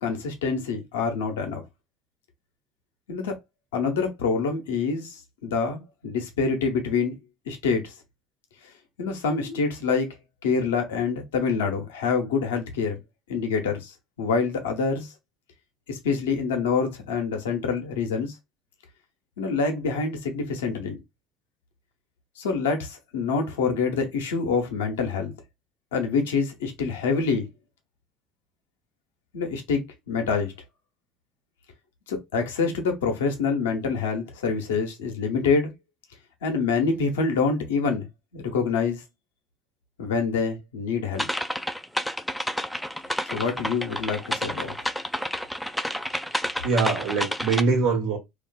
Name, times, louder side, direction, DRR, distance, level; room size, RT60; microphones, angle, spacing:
voice 1, 0.0-1.6 3.1-3.4 3.7-7.1 7.5-7.9 9.0-10.1 10.4-13.0 13.3-15.1 15.9-18.3 19.4-21.0 22.4-25.3 25.9-27.5 29.3-30.5 32.1-35.7 36.4-38.1 38.3-39.0 40.0-41.3 43.3-44.7, left 5 dB, 85° left, 0.6 m, -26 dB
sound 1, 41.2-47.6, equal, ahead, 0.3 m, -30 dB
voice 2, 46.3-48.2, right 4 dB, 70° right, 0.9 m, -24 dB
2.5 x 2.3 x 2.2 m
hypercardioid pair, 75°, 0 cm